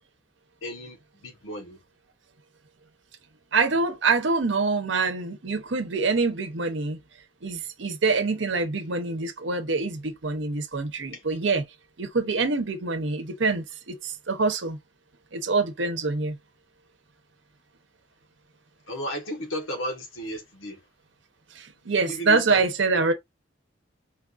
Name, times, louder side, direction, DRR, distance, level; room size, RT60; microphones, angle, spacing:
voice 1, 0.6-1.0 1.2-1.8 11.1-11.2 18.9-20.8 22.1-22.6 22.9-23.0, equal, 90° left, 1.1 m, -34 dB
voice 2, 3.5-7.0 7.4-11.6 12.0-14.8 15.3-16.4 21.6-23.1, right 4 dB, 70° right, 0.8 m, -25 dB
4.5 x 2.4 x 2.5 m
head